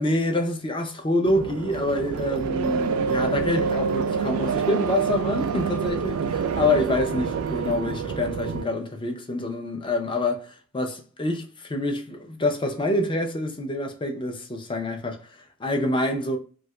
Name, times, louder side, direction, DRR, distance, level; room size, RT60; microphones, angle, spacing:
voice 1, 0.0-16.4, left 1 dB, 25° left, 0.5 m, -26 dB
sound 1, 1.3-8.6, right 6 dB, 85° right, 0.4 m, -27 dB
2.7 x 2.4 x 3.1 m
head